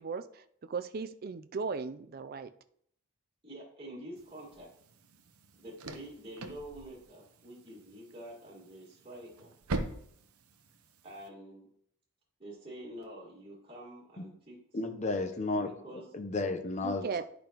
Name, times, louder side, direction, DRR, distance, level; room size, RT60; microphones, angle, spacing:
voice 1, 0.0-2.5 16.8-17.2, right 5 dB, 45° right, 11 dB, 0.4 m, -37 dB
voice 2, 3.4-4.7 5.5-9.5 11.0-11.7 12.4-14.6 15.6-16.0, right 1 dB, 25° right, -6 dB, 1.8 m, -47 dB
sound 1, 4.1-11.3, right 2 dB, 85° right, 0.7 m, -43 dB
voice 3, 14.7-15.7 16.1-17.2, left 2 dB, 30° left, 7 dB, 0.7 m, -32 dB
10.5 x 5.2 x 3.0 m, 0.68 s
head